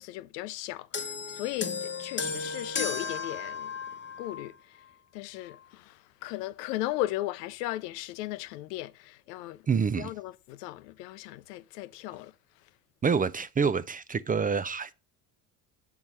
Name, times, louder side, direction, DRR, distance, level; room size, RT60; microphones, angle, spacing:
voice 1, 0.0-3.7 4.2-4.8 5.1-9.6 10.0-12.3, left 15 dB, 90° left, 0.6 m, -36 dB
sound 1, 0.9-4.5 5.4-5.6, left 4 dB, 25° left, 1.0 m, -35 dB
voice 2, 9.7-10.1 13.0-14.9, right 6 dB, 20° right, 0.4 m, -27 dB
7.6 x 4.6 x 5.4 m
hypercardioid pair, 70°, 46 cm